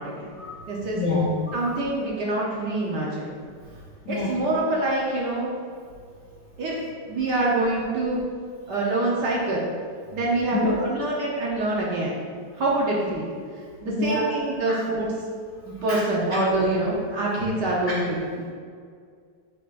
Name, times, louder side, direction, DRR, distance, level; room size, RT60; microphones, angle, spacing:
voice 1, 0.0-0.3 0.6-1.0 1.5-3.3 4.1-5.5 6.6-6.7 7.1-8.2 8.7-9.7 10.1-12.2 12.6-13.3 13.8-15.1 15.6-18.5, right 2 dB, 60° right, -4 dB, 1.5 m, -25 dB
voice 2, 0.9-1.6 4.0-4.4 10.5-10.8 13.8-14.3 14.7-14.8 15.9-16.0, left 2 dB, 50° left, -8 dB, 1.3 m, -26 dB
9.9 x 5.5 x 2.5 m, 2.1 s
omnidirectional pair, 2.2 m